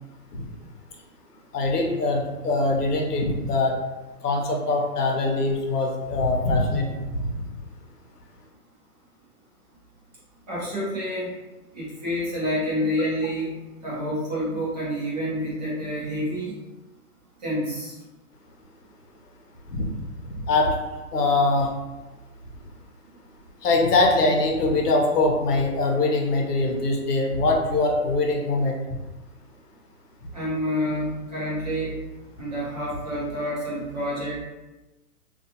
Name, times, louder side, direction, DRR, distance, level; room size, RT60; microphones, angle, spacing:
voice 1, 1.5-3.8 4.2-7.3 19.7-19.9 20.4-20.7 21.1-21.7 23.6-28.8, left 2 dB, 75° left, 1 dB, 0.8 m, -22 dB
voice 2, 10.5-11.3 11.7-13.5 13.8-16.6 17.4-18.0 30.3-31.9 32.4-34.4, equal, 25° right, -8 dB, 0.7 m, -28 dB
2.4 x 2.3 x 2.8 m, 1.1 s
hypercardioid pair, 165°, 47 cm